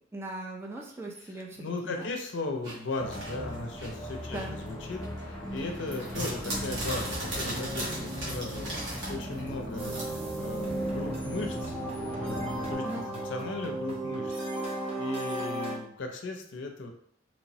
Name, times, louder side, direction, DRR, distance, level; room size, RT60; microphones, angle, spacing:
voice 1, 0.1-2.1 4.3-4.5 12.8-13.1, right 2 dB, 15° right, -1 dB, 0.3 m, -39 dB
voice 2, 1.2-11.8 12.2-12.4 12.7-14.3 14.8-16.9, left 3 dB, 75° left, 3 dB, 0.5 m, -37 dB
sound 1, 2.6-4.7 5.0-10.0, right 1 dB, 80° right, 1.0 m, -36 dB
sound 2, 3.0-12.7, equal, 15° left, 0.7 m, -38 dB
sound 3, 9.8-15.8, right 1 dB, 35° right, 0.7 m, -35 dB
3.0 x 2.0 x 2.7 m, 0.66 s
head